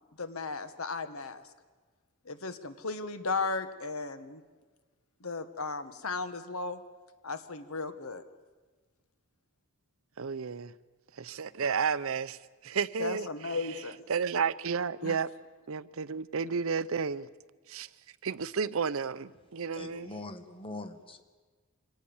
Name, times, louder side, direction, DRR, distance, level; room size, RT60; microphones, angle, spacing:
voice 1, 0.2-1.4 2.2-4.4 5.2-6.8 7.2-8.2 13.0-14.0 15.0-15.2, left 3 dB, 75° left, 1.6 m, -35 dB
voice 2, 10.2-10.7 11.2-12.4 12.6-13.5 14.1-15.3 15.7-17.3 17.7-17.9 18.2-20.1, right 6 dB, 70° right, 0.7 m, -32 dB
voice 3, 19.7-21.2, left 2 dB, 25° left, 1.6 m, -42 dB
25.0 x 18.5 x 7.2 m
head